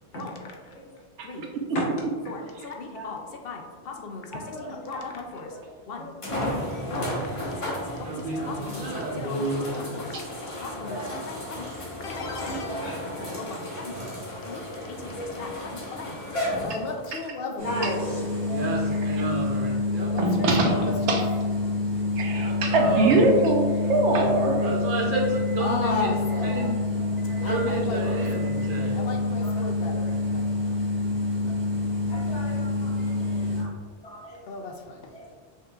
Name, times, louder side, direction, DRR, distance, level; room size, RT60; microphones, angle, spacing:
voice 1, 2.3-5.6 5.9-6.1 6.4-6.6 6.9-8.2 8.5-11.7 12.0-13.1 13.3-14.6 14.9-16.2 16.6-17.8 20.0-21.2 25.6-26.7 27.4-30.8 34.5-35.3, left 4 dB, 65° left, 2 dB, 0.8 m, -36 dB
voice 2, 4.3-5.1 5.3-5.4 6.0-6.1 6.7-7.0 8.3-8.5 9.6-9.7 10.3-11.2 12.2-13.5 14.5-14.8 15.1-15.5 17.6-18.6 22.4-22.6 24.6-24.7 26.5-26.7 27.3-27.5 29.4-29.7 31.5-31.6 32.1-33.7 34.0-34.4 35.1-35.3, equal, 90° left, -3 dB, 1.3 m, -37 dB
Automatic Garage Roller Door Opening, 5.1-5.2 6.2-17.2 18.0-18.1 21.5-21.6, left 1 dB, 30° left, 1.0 m, -34 dB
voice 3, 8.0-9.7 13.9-14.3 18.5-20.1 20.5-20.9 22.4-23.2 24.6-26.1 26.4-29.0, right 2 dB, 55° right, -2 dB, 1.0 m, -31 dB
sound 1, 17.6-33.6, left 2 dB, 70° right, 2.0 m, -27 dB
voice 4, 20.2-20.7 21.1-21.2 22.2-24.7, right 2 dB, 90° right, 2 dB, 1.0 m, -22 dB
5.6 x 3.6 x 2.3 m, 1.5 s
omnidirectional pair, 1.1 m